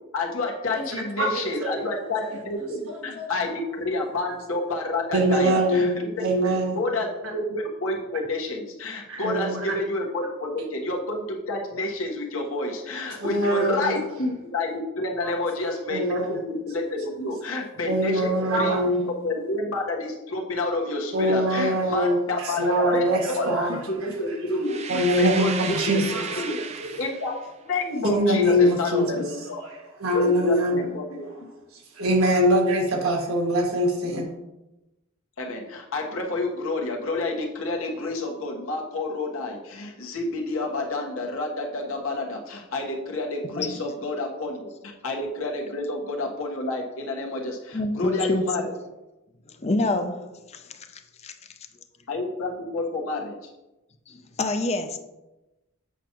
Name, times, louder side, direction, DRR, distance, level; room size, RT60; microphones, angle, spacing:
voice 1, 0.1-6.3 6.7-18.8 19.0-23.5 23.9-25.5 26.1-26.6 27.0-29.6 30.1-31.3 35.4-48.7 52.1-53.3, left 2 dB, 70° left, 0 dB, 1.4 m, -29 dB
voice 2, 1.2-1.8 2.9-3.3 5.1-5.9 6.2-6.8 7.2-7.3 9.1-9.8 13.1-13.9 15.2-15.4 15.9-16.4 17.9-19.0 21.1-24.1 24.9-26.5 26.8-26.9 28.0-29.2 30.0-30.8 31.9-34.3, equal, 80° right, 1 dB, 1.6 m, -23 dB
sound 1, 24.6-27.4, right 6 dB, 30° right, 0.5 m, -34 dB
voice 3, 47.7-48.4 49.6-50.2 50.5-50.6 51.2-51.3 54.1-55.0, left 2 dB, 30° left, 7 dB, 0.6 m, -26 dB
8.1 x 5.8 x 3.0 m, 1.0 s
head